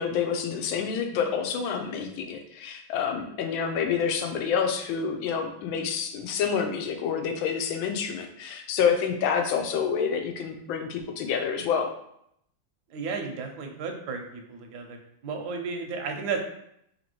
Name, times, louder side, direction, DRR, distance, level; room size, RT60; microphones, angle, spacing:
voice 1, 0.0-11.9, left 6 dB, 85° left, 4 dB, 1.4 m, -28 dB
voice 2, 12.9-15.0 15.2-16.4, right 5 dB, 70° right, 3 dB, 1.1 m, -33 dB
3.4 x 2.8 x 4.3 m, 0.74 s
omnidirectional pair, 2.1 m